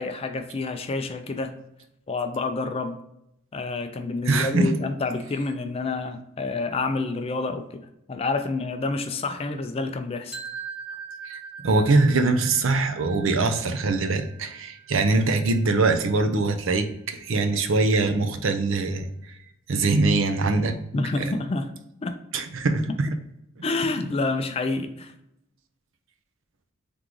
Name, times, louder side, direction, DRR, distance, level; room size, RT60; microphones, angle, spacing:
voice 1, 0.0-1.5 2.1-3.0 3.5-10.4 20.9-21.7 22.0-22.2 23.6-25.1, left 3 dB, 25° left, 7 dB, 0.3 m, -28 dB
voice 2, 4.3-4.7 11.3-19.1 19.7-20.7 21.2-21.3 22.3-23.1 23.6-23.7, right 3 dB, 65° right, 6 dB, 0.6 m, -23 dB
sound 1, 10.3-16.2, right 6 dB, 10° right, 1.0 m, -41 dB
3.8 x 3.6 x 3.0 m, 0.82 s
head